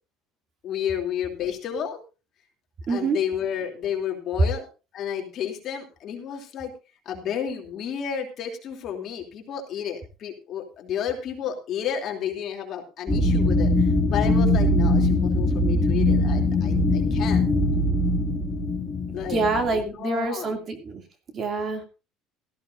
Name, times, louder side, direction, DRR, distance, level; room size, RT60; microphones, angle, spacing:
voice 1, 0.6-2.0 2.9-4.7 4.9-6.7 7.0-17.5 19.1-19.4 19.7-20.6, left 8 dB, 45° left, 2 dB, 3.0 m, -31 dB
voice 2, 2.9-3.2 19.3-21.0 21.3-21.8, right 3 dB, 35° right, 5 dB, 2.5 m, -26 dB
sound 1, 13.1-19.8, left 2 dB, 15° left, 2.1 m, -22 dB
17.5 x 14.5 x 2.6 m, 0.31 s
cardioid pair, 155°, 0 cm